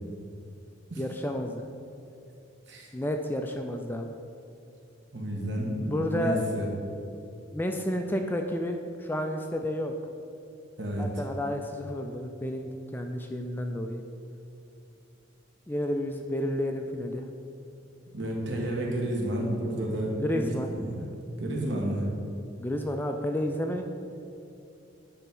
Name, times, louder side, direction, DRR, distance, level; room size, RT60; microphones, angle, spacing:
voice 1, 1.0-1.7 2.9-4.1 5.9-6.4 7.5-9.9 11.0-14.0 15.7-17.3 20.2-20.7 22.6-23.9, left 1 dB, 10° left, 4 dB, 0.3 m, -31 dB
voice 2, 5.1-6.7 10.8-11.2 18.1-20.4 20.8-21.1 21.4-22.1, right 1 dB, 60° right, -2 dB, 1.4 m, -30 dB
10.0 x 3.5 x 5.9 m, 2.7 s
head